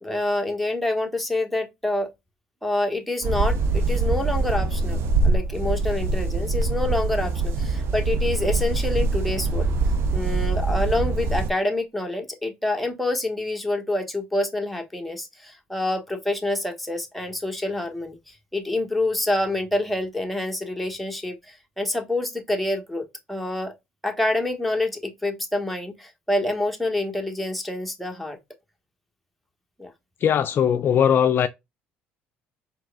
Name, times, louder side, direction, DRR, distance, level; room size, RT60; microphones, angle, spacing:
voice 1, 0.0-2.1 2.6-5.0 5.2-9.7 10.1-23.7 24.0-28.4 29.8-29.9, left 2 dB, ahead, 1.2 m, -27 dB
sound 1, 3.2-11.5, right 3 dB, 60° right, 0.7 m, -24 dB
voice 2, 30.2-31.5, left 8 dB, 50° left, 0.4 m, -19 dB
4.5 x 3.4 x 2.2 m
supercardioid pair, 70°, 5 cm